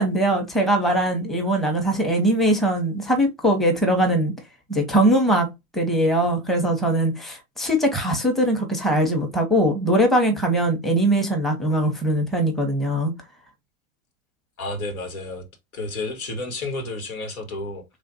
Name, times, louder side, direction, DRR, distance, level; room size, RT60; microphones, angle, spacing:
voice 1, 0.0-4.3 4.7-5.5 5.7-13.1, right 1 dB, ahead, 0.9 m, -21 dB
voice 2, 14.6-15.5 15.7-17.8, left 2 dB, 75° left, 1.5 m, -31 dB
3.3 x 2.5 x 4.1 m
hypercardioid pair, 100°, 43 cm